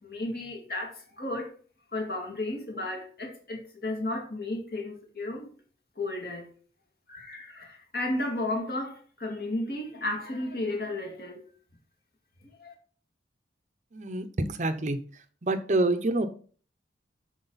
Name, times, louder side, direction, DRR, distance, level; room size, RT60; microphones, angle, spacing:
voice 1, 0.0-1.5 1.9-5.5 6.0-6.5 7.1-11.4 12.6-12.7, left 2 dB, 55° left, 2.4 m, -33 dB
voice 2, 13.9-15.0 15.4-16.3, right 2 dB, 40° right, 0.7 m, -27 dB
7.9 x 6.4 x 4.0 m
head